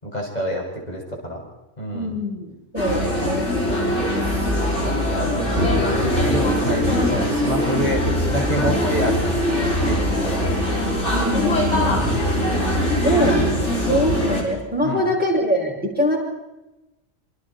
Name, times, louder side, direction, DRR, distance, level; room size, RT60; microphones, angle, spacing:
voice 1, 0.0-1.4 1.8-2.2 2.9-3.1 3.7-3.9 4.5-10.6 11.8-12.4 13.2-13.5 13.8-14.0 14.8-15.0, left 1 dB, 35° left, -2 dB, 7.0 m, -28 dB
voice 2, 1.9-4.0 7.0-7.5 11.1-12.1 13.0-13.3 13.9-16.2, equal, 5° right, -4 dB, 7.6 m, -24 dB
sound 1, 2.8-14.4, left 1 dB, 70° left, 6.3 m, -21 dB
27.5 x 26.0 x 4.5 m, 1.0 s
omnidirectional pair, 1.3 m